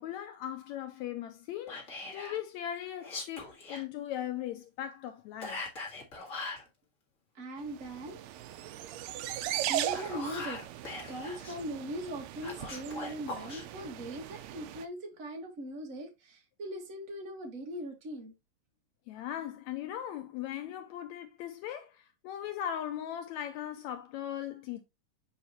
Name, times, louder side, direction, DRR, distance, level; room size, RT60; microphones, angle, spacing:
voice 1, 0.0-1.8 2.1-5.6 19.1-24.8, left 11 dB, 80° left, 1.7 m, -38 dB
Whispering, 1.7-2.4 3.0-3.8 5.4-6.7 9.7-11.6 12.4-13.6, left 3 dB, 30° left, 1.7 m, -41 dB
voice 2, 7.3-8.2 9.7-10.6 11.1-18.3, right 1 dB, 35° right, 1.4 m, -40 dB
sound 1, 7.7-14.8, right 13 dB, 85° right, 1.5 m, -38 dB
7.2 x 5.0 x 2.9 m
omnidirectional pair, 3.7 m